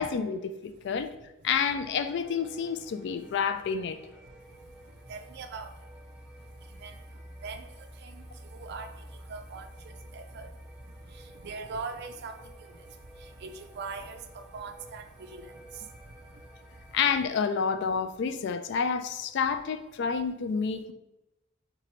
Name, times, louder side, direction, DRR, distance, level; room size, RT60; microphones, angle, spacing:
voice 1, 0.0-1.1 1.4-4.0 16.9-20.9, left 6 dB, 55° left, 10 dB, 0.3 m, -29 dB
voice 2, 1.1-1.5 4.2-4.3 4.7-5.9 6.6-16.8, right 4 dB, 50° right, 7 dB, 0.4 m, -43 dB
sound 1, 1.6-17.0, equal, 5° right, 0.7 m, -50 dB
4.5 x 3.8 x 3.0 m, 0.96 s
head